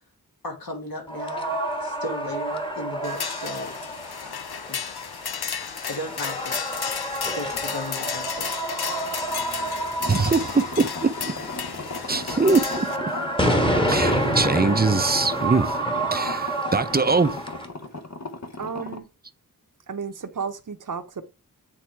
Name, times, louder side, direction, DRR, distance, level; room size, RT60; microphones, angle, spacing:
voice 1, 0.4-1.5 1.8-3.8 4.2-4.4 4.7-4.9 5.9-6.6 7.3-8.6, left 1 dB, 70° left, 2.3 m, -35 dB
sound 1, 1.1-17.7, right 1 dB, 15° left, 1.4 m, -29 dB
sound 2, 3.0-13.0, left 7 dB, 85° left, 0.7 m, -33 dB
sound 3, 10.0-19.0, left 3 dB, 45° left, 0.9 m, -37 dB
voice 2, 10.1-11.4 12.1-13.1 13.9-15.8 16.1-17.4, right 4 dB, 25° right, 0.6 m, -22 dB
voice 3, 18.6-19.1 19.9-21.2, right 6 dB, 55° right, 0.8 m, -32 dB
8.6 x 3.7 x 4.6 m
wide cardioid pair, 65°, 37 cm